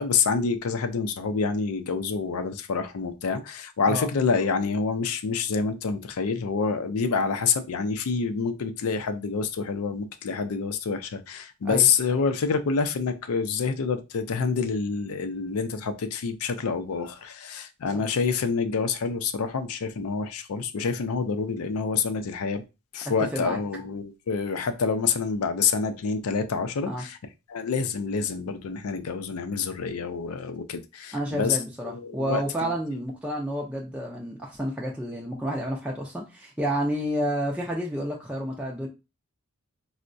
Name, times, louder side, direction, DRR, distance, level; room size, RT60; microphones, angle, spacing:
voice 1, 0.0-22.6 22.9-27.2 27.5-31.6 31.8-32.7, left 5 dB, 75° left, 0.4 m, -27 dB
voice 2, 23.2-23.6 26.8-27.0 31.1-38.9, equal, 5° right, 0.4 m, -30 dB
4.4 x 2.1 x 2.5 m
head